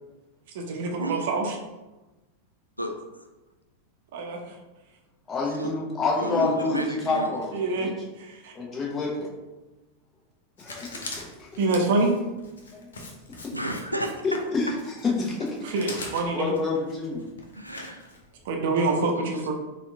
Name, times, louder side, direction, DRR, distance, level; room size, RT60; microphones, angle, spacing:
voice 1, 0.5-1.6 4.1-4.4 7.5-7.9 8.2-8.5 11.6-12.1 15.6-16.5 18.5-19.5, right 3 dB, 55° right, 1 dB, 0.7 m, -26 dB
voice 2, 5.3-7.9 8.5-9.3 10.6-11.1 11.4-11.5 12.7-12.9 14.2-14.7 15.0-15.6 16.3-17.2, left 3 dB, 20° left, -3 dB, 1.0 m, -28 dB
voice 3, 6.2-7.4 13.5-14.2 17.5-18.1 18.8-19.3, right 1 dB, 90° right, 4 dB, 0.3 m, -31 dB
Writing, 10.6-18.5, left 2 dB, 65° left, 0.7 m, -42 dB
4.2 x 2.4 x 3.5 m, 1.1 s
figure-of-eight pair, 90°, 0 cm